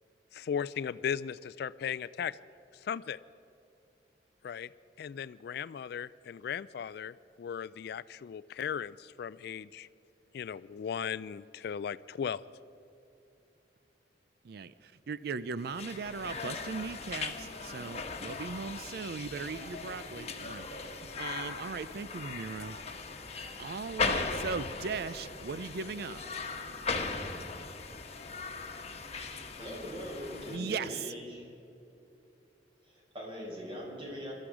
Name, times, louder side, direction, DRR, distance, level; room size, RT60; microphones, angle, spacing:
voice 1, 0.3-2.4 2.8-3.2 4.4-4.7 5.0-9.9 10.3-12.4, left 7 dB, 65° left, 16 dB, 0.3 m, -37 dB
voice 2, 14.4-22.8 23.6-26.2 30.5-31.0, right 5 dB, 60° right, 15 dB, 0.4 m, -38 dB
sound 1, 15.6-30.6, left 4 dB, 40° left, 1.2 m, -38 dB
voice 3, 29.6-31.5 32.8-34.3, equal, 30° right, -3 dB, 4.8 m, -41 dB
22.5 x 13.0 x 4.9 m, 2.8 s
head